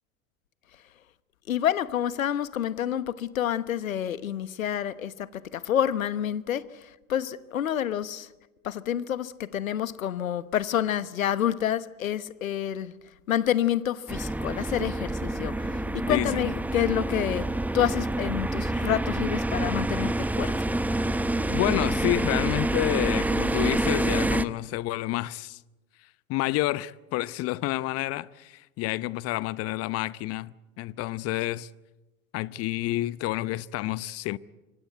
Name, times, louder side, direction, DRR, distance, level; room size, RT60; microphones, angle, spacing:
voice 1, 1.5-8.3 8.6-12.9 13.3-17.5 17.7-20.5, left 10 dB, 75° left, 1.2 m, -28 dB
sound 1, 14.1-24.4, right 1 dB, 5° right, 0.8 m, -27 dB
voice 2, 16.1-16.5 21.5-25.6 26.3-31.7 32.3-34.4, left 17 dB, 35° left, 0.8 m, -29 dB
26.0 x 24.5 x 8.0 m
figure-of-eight pair, 85°, 42 cm